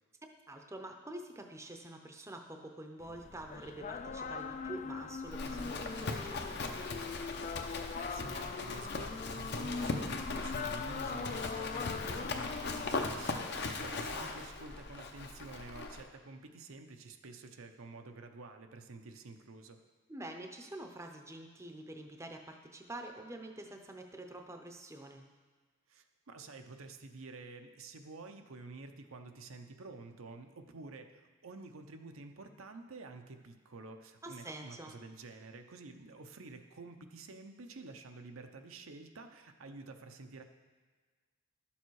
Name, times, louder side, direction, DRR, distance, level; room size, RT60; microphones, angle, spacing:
voice 1, 0.5-6.8 14.0-14.3 20.1-25.2 34.2-34.9, right 1 dB, 15° right, 4 dB, 0.6 m, -47 dB
sound 1, 3.0-13.0, left 5 dB, 35° left, 0.3 m, -41 dB
Livestock farm animals working animals, 5.3-16.1, left 3 dB, 55° left, 0.8 m, -39 dB
voice 2, 7.6-19.8 25.9-40.4, right 3 dB, 75° right, 6 dB, 0.7 m, -50 dB
12.0 x 7.2 x 4.7 m, 1.5 s
head